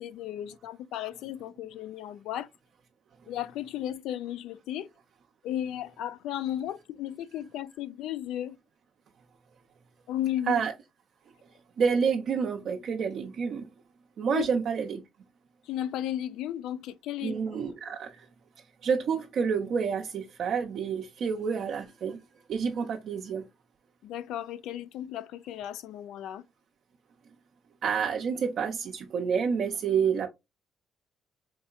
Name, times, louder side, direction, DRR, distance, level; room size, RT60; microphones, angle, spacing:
voice 1, 0.0-2.5 3.3-4.9 5.4-8.6 10.1-10.6 14.3-14.4 15.6-17.4 17.9-18.0 24.0-26.4, left 12 dB, 85° left, 0.4 m, -34 dB
voice 2, 11.8-13.7 14.2-15.0 17.2-18.3 18.8-22.2 22.5-23.5 27.8-30.3, right 6 dB, 60° right, 0.6 m, -28 dB
4.5 x 2.8 x 2.4 m
cardioid pair, 95°, 0 cm